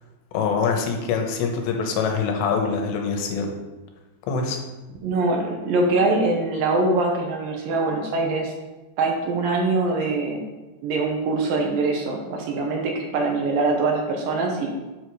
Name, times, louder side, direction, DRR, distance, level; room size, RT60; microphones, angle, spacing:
voice 1, 0.3-3.5 4.3-4.6, left 5 dB, 85° left, 3 dB, 3.2 m, -24 dB
voice 2, 5.0-8.5 9.0-10.4 10.8-14.7, right 3 dB, 70° right, 1 dB, 2.3 m, -23 dB
8.1 x 4.8 x 4.9 m, 1.1 s
omnidirectional pair, 4.9 m